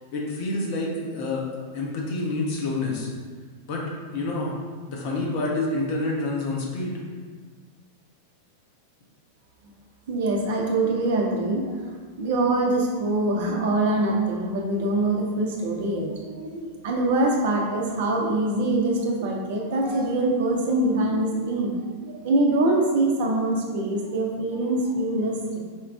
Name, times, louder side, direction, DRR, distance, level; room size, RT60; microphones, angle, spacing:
voice 1, 0.1-1.5 1.7-3.1 3.7-3.8 4.1-4.5 4.9-7.0, left 2 dB, 45° left, -2 dB, 0.9 m, -28 dB
voice 2, 10.1-11.9 12.2-25.6, right 2 dB, 55° right, 0 dB, 0.6 m, -24 dB
4.5 x 2.3 x 3.4 m, 1.5 s
figure-of-eight pair, 90°, 0 cm